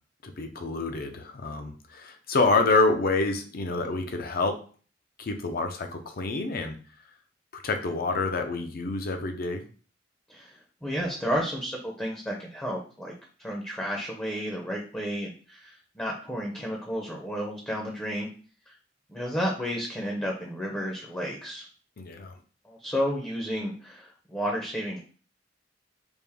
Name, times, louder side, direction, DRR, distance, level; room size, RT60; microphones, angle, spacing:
voice 1, 0.2-4.6 5.2-6.7 7.5-9.7 22.0-22.3, left 3 dB, 55° left, 6 dB, 0.5 m, -27 dB
voice 2, 10.8-13.1 13.4-18.3 19.1-21.6 22.6-25.0, equal, 10° left, -1 dB, 0.6 m, -32 dB
3.5 x 2.5 x 3.4 m, 0.39 s
head